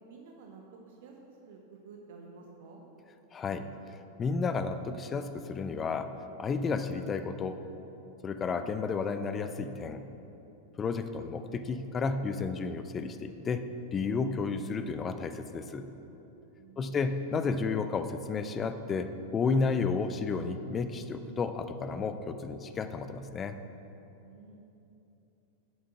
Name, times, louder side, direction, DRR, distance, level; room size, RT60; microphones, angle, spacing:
voice 1, 0.1-2.8 16.6-17.1 24.2-24.6, right 4 dB, 55° right, 1 dB, 1.0 m, -51 dB
voice 2, 3.3-3.7 4.2-6.1 6.4-7.6 8.2-10.1 10.8-13.6 13.9-15.9 16.8-23.6, left 4 dB, 20° left, 10 dB, 0.6 m, -32 dB
8.7 x 7.5 x 6.0 m, 3.0 s
figure-of-eight pair, 90°, 0 cm